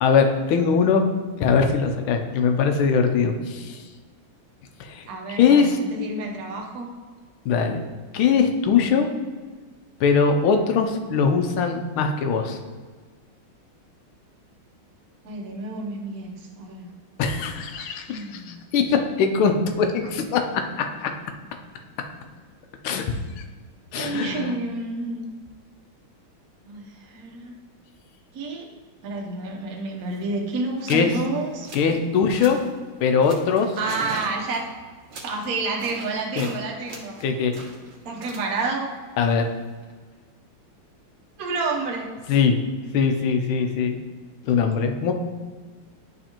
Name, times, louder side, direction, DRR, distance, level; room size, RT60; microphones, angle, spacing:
voice 1, 0.0-1.0 1.4-3.8 4.8-5.1 5.3-5.8 7.4-7.8 8.1-9.1 10.0-12.6 17.2-20.5 21.0-21.1 22.8-23.1 23.9-24.6 30.9-31.1 31.7-32.6 33.0-33.8 36.4-36.5 37.2-37.5 39.2-39.5 42.3-42.6 42.9-44.0 44.4-45.1, left 6 dB, 80° left, 5 dB, 1.5 m, -21 dB
voice 2, 5.1-6.9 15.2-16.9 18.1-18.6 23.9-25.3 26.6-27.5 28.3-28.7 29.0-32.0 33.8-34.6 35.2-37.2 38.0-38.9 41.4-42.1, right 3 dB, 55° right, 0 dB, 1.2 m, -30 dB
sound 1, 29.7-29.8 30.0-30.3 30.8-31.1 31.4-32.0 32.3-32.7 33.2-36.6 36.9-39.9, right 3 dB, 85° right, 1.9 m, -41 dB
10.5 x 4.1 x 2.9 m, 1.5 s
omnidirectional pair, 2.3 m